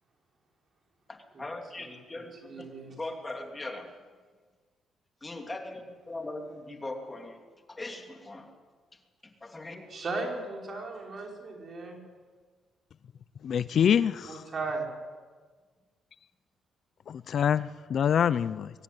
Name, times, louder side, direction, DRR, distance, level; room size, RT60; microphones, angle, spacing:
voice 1, 1.1-4.0 5.2-7.4 7.7-8.5 9.2-9.9, left 2 dB, 20° left, 4 dB, 3.0 m, -40 dB
voice 2, 2.4-2.9 9.9-12.0 14.3-14.9, right 3 dB, 45° right, 1 dB, 5.8 m, -36 dB
voice 3, 13.4-14.4 17.1-18.7, left 8 dB, 60° left, 16 dB, 0.6 m, -25 dB
23.0 x 15.0 x 9.6 m, 1.5 s
cardioid pair, 90°, 0 cm